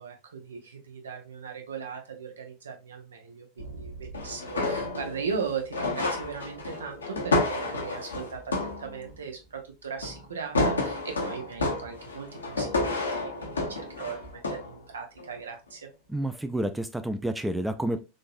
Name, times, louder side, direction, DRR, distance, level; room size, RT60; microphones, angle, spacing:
voice 1, 0.0-15.9, right 6 dB, 85° right, 4 dB, 0.8 m, -38 dB
sound 1, 3.6-5.5 5.7-9.1 10.0-10.3 10.5-14.8 15.2-15.4, left 2 dB, 90° left, 0.7 m, -30 dB
voice 2, 16.1-18.0, right 1 dB, 5° right, 9 dB, 0.4 m, -29 dB
3.8 x 2.6 x 2.4 m, 0.28 s
hypercardioid pair, 90°, 0 cm